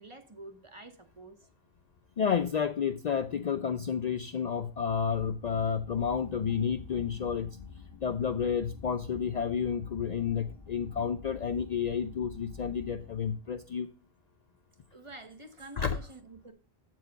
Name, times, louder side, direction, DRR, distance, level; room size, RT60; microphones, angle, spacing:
voice 1, 0.0-1.5 14.9-16.5, right 2 dB, 30° right, 0.9 m, -48 dB
voice 2, 2.2-7.6 8.0-13.9 15.8-16.0, left 7 dB, 55° left, 0.5 m, -30 dB
sound 1, 4.6-13.7, left 5 dB, ahead, 2.6 m, -48 dB
7.9 x 4.7 x 5.1 m
omnidirectional pair, 1.0 m